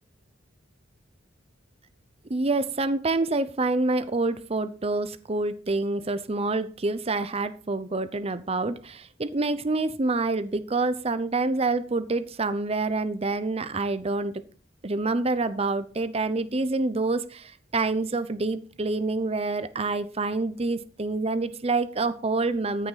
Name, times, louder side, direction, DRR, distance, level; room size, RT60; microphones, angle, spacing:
voice 1, 2.3-14.3 14.8-22.9, right 3 dB, 35° right, 13 dB, 0.7 m, -27 dB
13.5 x 6.8 x 4.1 m, 0.40 s
head